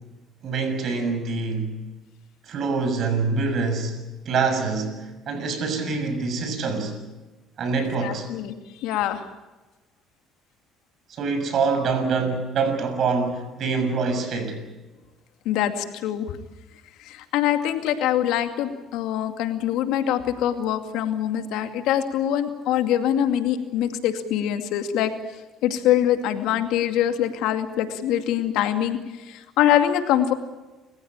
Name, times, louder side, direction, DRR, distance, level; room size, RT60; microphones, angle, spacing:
voice 1, 0.4-1.8 2.5-4.0 4.2-7.0 7.6-8.3 11.1-14.6, right 4 dB, 60° right, 8 dB, 6.5 m, -25 dB
voice 2, 8.0-8.5 8.8-9.2 15.5-16.4 17.0-25.1 25.6-30.3, left 11 dB, 80° left, 7 dB, 2.4 m, -24 dB
29.5 x 15.5 x 8.9 m, 1.2 s
supercardioid pair, 80°, 0 cm